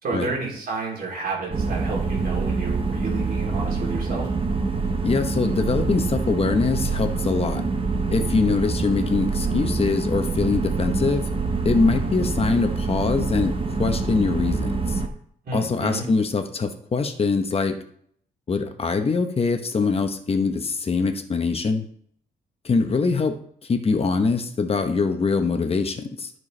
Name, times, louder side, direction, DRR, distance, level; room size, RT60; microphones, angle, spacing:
voice 1, 0.0-4.3 15.4-16.0, right 3 dB, 55° right, -3 dB, 3.2 m, -30 dB
sound 1, 1.5-15.1, right 4 dB, 30° right, 0.9 m, -25 dB
voice 2, 5.0-7.6 8.1-11.3 11.6-15.0 15.5-17.8 18.5-21.8 22.6-23.4 23.7-26.3, left 4 dB, 35° left, 6 dB, 0.9 m, -23 dB
13.5 x 4.6 x 3.3 m, 0.65 s
cardioid pair, 120°, 18 cm